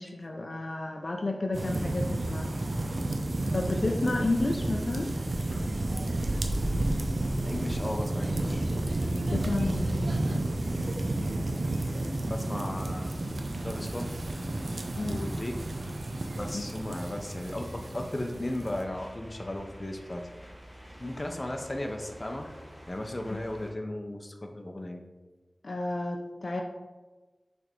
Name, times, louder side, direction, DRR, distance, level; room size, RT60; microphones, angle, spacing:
voice 1, 0.0-2.5 3.5-5.1 9.3-9.9 14.9-15.2 16.5-16.6 23.3-23.4 25.6-26.6, left 2 dB, 65° left, 2 dB, 0.5 m, -31 dB
sound 1, 1.5-18.8, right 1 dB, 80° right, 0.6 m, -31 dB
voice 2, 7.3-8.7 12.2-13.1 13.6-14.1 15.1-15.6 16.4-20.3 21.0-22.5 22.9-25.0, left 1 dB, 35° left, 3 dB, 0.7 m, -35 dB
sound 2, 13.5-23.7, equal, 10° right, 1.6 m, -49 dB
6.3 x 3.5 x 4.4 m, 1.2 s
wide cardioid pair, 65°, 0 cm